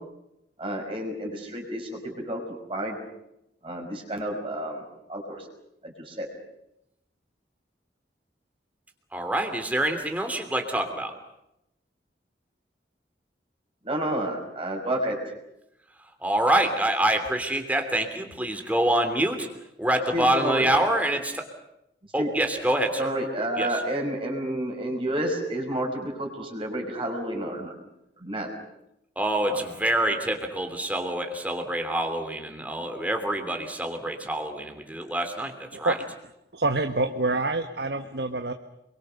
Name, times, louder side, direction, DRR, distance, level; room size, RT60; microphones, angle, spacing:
voice 1, 0.6-2.4 2.7-3.0 3.6-4.8 5.1-5.5 5.8-6.3 13.8-15.2 20.1-20.7 22.2-22.3 23.0-27.7 28.2-28.5 29.5-29.6, right 1 dB, 30° right, 1 dB, 5.2 m, -30 dB
voice 2, 9.1-11.1 16.2-19.5 19.8-21.5 22.1-23.1 23.6-23.8 29.2-36.0, right 1 dB, 10° right, 5 dB, 3.1 m, -26 dB
voice 3, 36.5-38.5, right 2 dB, 65° right, 6 dB, 1.3 m, -26 dB
28.5 x 23.0 x 6.7 m, 0.84 s
head